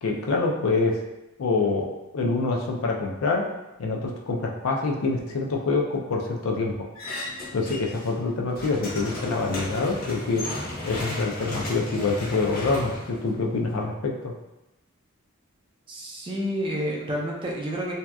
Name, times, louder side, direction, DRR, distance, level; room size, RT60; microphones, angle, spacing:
voice 1, 0.0-1.0 1.4-1.9 2.1-3.4 3.8-6.7 7.5-10.5 10.8-14.3, left 3 dB, 75° left, 0 dB, 0.4 m, -26 dB
sound 1, 7.0-8.1 8.4-13.8, left 2 dB, 45° left, 0.7 m, -35 dB
voice 2, 15.9-17.9, equal, 25° right, -3 dB, 0.4 m, -29 dB
2.7 x 2.2 x 2.2 m, 0.95 s
head